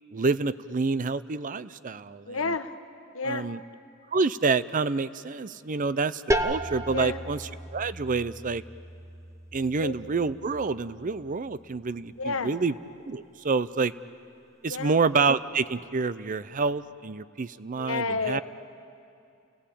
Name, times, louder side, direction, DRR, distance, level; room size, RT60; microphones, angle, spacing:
voice 1, 0.1-2.4 3.2-3.6 4.1-7.4 7.7-8.6 9.5-12.7 13.1-13.9 14.6-18.4, right 4 dB, 40° right, 16 dB, 0.5 m, -28 dB
voice 2, 2.3-2.8 3.1-3.5 6.9-7.3 9.8-9.9 12.2-12.6 14.7-15.0 17.8-18.4, left 3 dB, 80° left, 9 dB, 1.1 m, -30 dB
sound 1, 6.3-11.8, right 1 dB, 15° right, 0.9 m, -34 dB
30.0 x 18.0 x 8.6 m, 2.5 s
head